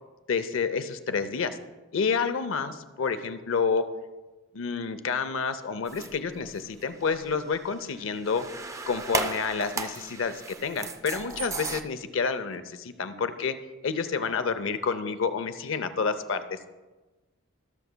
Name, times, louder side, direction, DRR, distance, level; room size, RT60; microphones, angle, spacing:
voice 1, 0.3-1.6 1.9-3.8 4.5-8.5 8.9-13.5 13.8-16.6, left 5 dB, 65° left, 10 dB, 0.6 m, -29 dB
sound 1, 5.9-6.4 7.1-11.8, right 3 dB, 15° right, 0.3 m, -35 dB
17.0 x 6.8 x 2.2 m, 1.2 s
head